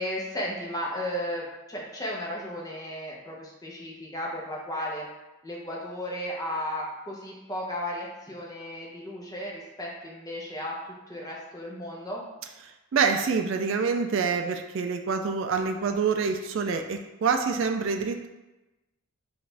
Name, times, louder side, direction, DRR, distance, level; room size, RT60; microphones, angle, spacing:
voice 1, 0.0-5.0 5.4-10.7 11.1-12.3, equal, 15° left, -3 dB, 0.8 m, -34 dB
voice 2, 12.9-18.3, right 5 dB, 60° right, 6 dB, 0.3 m, -26 dB
6.1 x 2.5 x 3.3 m, 1.0 s
head